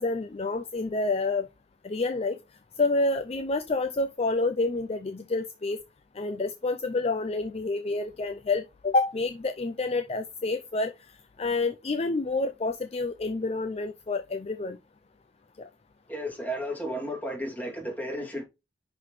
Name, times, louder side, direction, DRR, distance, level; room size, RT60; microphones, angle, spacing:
voice 1, 0.0-1.5 1.8-2.4 2.8-5.8 6.1-10.9 11.4-14.8 15.6-15.7, left 3 dB, 35° left, 0.4 m, -28 dB
voice 2, 16.1-18.4, equal, 10° left, 2.5 m, -33 dB
10.5 x 3.8 x 3.1 m
head